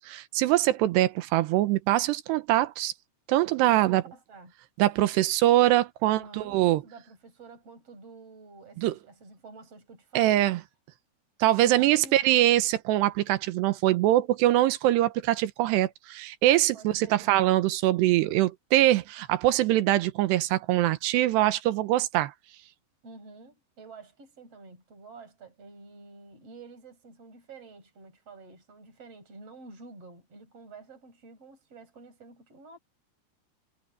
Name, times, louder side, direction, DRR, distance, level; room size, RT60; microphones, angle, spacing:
voice 1, 0.0-2.9 3.3-4.0 4.8-6.8 8.8-8.9 10.2-10.6 11.4-22.3, right 15 dB, 80° right, 3.0 m, -23 dB
voice 2, 3.7-4.5 6.1-10.5 11.5-12.5 16.7-17.3 23.0-32.8, right 3 dB, 35° right, 8.8 m, -49 dB
omnidirectional pair, 5.1 m